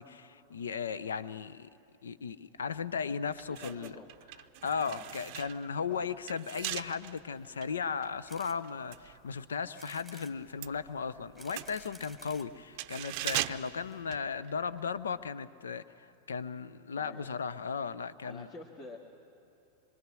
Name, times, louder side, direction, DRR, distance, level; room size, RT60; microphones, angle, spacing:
voice 1, 0.0-1.7 2.0-3.9 4.6-18.5, left 6 dB, 70° left, 15 dB, 0.7 m, -36 dB
sound 1, 2.7-2.9 3.3-9.9 10.2-14.8 15.1-15.3, right 14 dB, 45° right, 0.6 m, -41 dB
voice 2, 3.5-4.1 4.9-5.0 5.9-6.1 17.0-17.3 18.2-19.0, left 3 dB, 35° left, -3 dB, 2.1 m, -48 dB
sound 2, 8.3-8.6 9.1-9.2 9.7-10.3 11.1-12.5 13.3-13.4 13.6-13.7 13.9-14.0, right 3 dB, 5° right, 1.5 m, -53 dB
25.0 x 23.5 x 6.3 m, 2.9 s
figure-of-eight pair, 90°, 0 cm